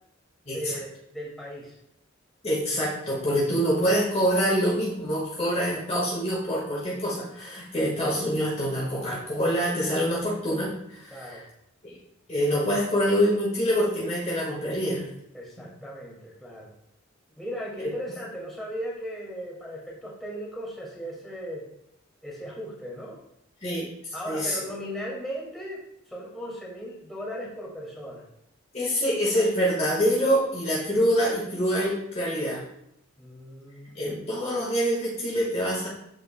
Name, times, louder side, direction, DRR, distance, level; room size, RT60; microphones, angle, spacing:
voice 1, 0.5-1.8 11.1-11.4 15.3-16.7 17.4-21.7 22.2-23.2 24.1-25.8 26.1-28.3 33.2-34.2, equal, ahead, -6 dB, 2.3 m, -37 dB
voice 2, 2.4-11.4 11.8-11.9 12.3-15.1 17.8-17.9 23.6-23.8 24.2-24.6 28.7-32.6 33.9-35.9, equal, 30° left, -4 dB, 1.6 m, -25 dB
13.0 x 4.5 x 2.2 m, 0.78 s
head